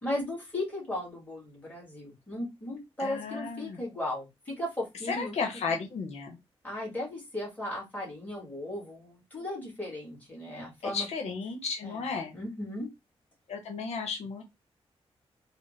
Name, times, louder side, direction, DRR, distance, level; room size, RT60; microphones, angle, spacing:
voice 1, 0.0-5.3 5.7-5.8 6.6-11.1 11.8-12.0 12.3-12.9, left 1 dB, 15° left, -4 dB, 1.9 m, -36 dB
voice 2, 3.0-3.8 5.1-6.4 10.8-12.4 13.5-14.4, left 5 dB, 90° left, 2 dB, 0.8 m, -34 dB
4.0 x 2.1 x 3.2 m, 0.21 s
wide cardioid pair, 165°, 11 cm